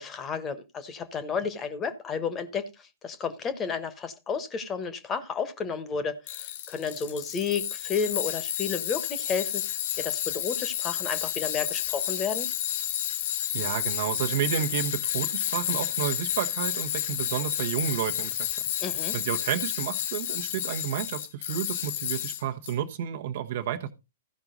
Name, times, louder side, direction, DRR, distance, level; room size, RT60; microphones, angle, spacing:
voice 1, 0.0-12.5 18.8-19.1, left 6 dB, 20° left, 1.3 m, -32 dB
Tools, 6.3-22.7, left 11 dB, 45° left, 0.9 m, -31 dB
voice 2, 13.5-18.5 19.1-23.9, right 10 dB, 50° right, 1.2 m, -31 dB
15.5 x 5.9 x 4.0 m
figure-of-eight pair, 110°, 0 cm